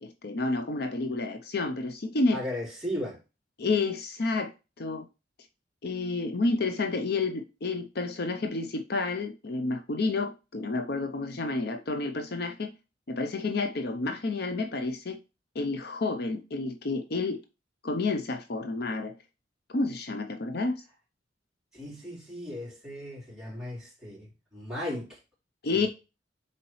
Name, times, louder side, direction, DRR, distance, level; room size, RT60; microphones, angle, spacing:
voice 1, 0.0-2.4 3.6-4.5 4.8-5.1 5.8-12.7 13.1-15.2 15.5-17.4 17.8-19.1 19.7-20.7 25.6-25.9, left 3 dB, 60° left, 0.7 m, -30 dB
voice 2, 2.3-3.2 21.7-25.2 25.7-25.9, left 1 dB, 5° right, 4.0 m, -36 dB
7.0 x 4.3 x 3.1 m
head